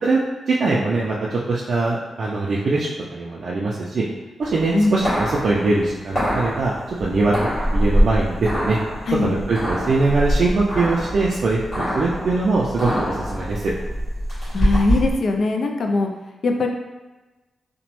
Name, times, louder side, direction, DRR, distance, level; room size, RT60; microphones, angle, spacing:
voice 1, 0.5-4.1 4.4-6.7 7.0-8.8 9.2-13.7, right 3 dB, 55° right, -5 dB, 0.3 m, -22 dB
sound 1, 4.4-15.2, equal, 35° left, 1.5 m, -24 dB
voice 2, 14.5-16.1 16.4-16.7, left 3 dB, 55° left, 3 dB, 0.3 m, -20 dB
2.9 x 2.1 x 2.9 m, 1.1 s
wide cardioid pair, 135°, 0 cm